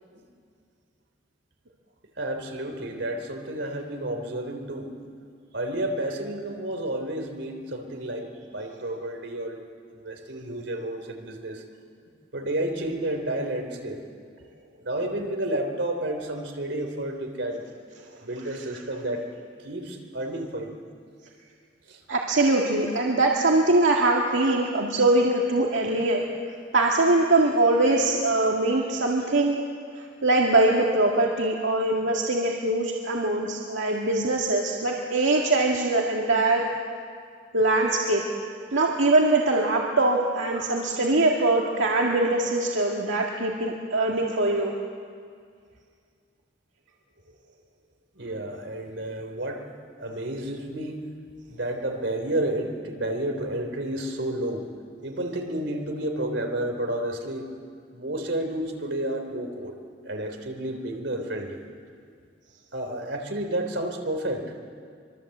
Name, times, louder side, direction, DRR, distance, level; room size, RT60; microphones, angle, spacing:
voice 1, 2.2-4.9 5.5-9.6 9.9-11.6 12.3-14.0 14.8-17.6 18.2-19.3 19.6-20.8 21.9-22.0 24.4-24.6 48.2-49.7 50.0-51.1 51.5-54.6 55.0-57.5 57.9-59.7 60.0-61.6 62.7-64.4, right 1 dB, 70° right, 4 dB, 3.6 m, -31 dB
voice 2, 22.1-26.3 26.7-29.6 30.2-36.6 37.5-38.2 38.7-44.7, right 2 dB, 85° right, -1 dB, 2.0 m, -22 dB
25.0 x 24.0 x 8.0 m, 2.2 s
head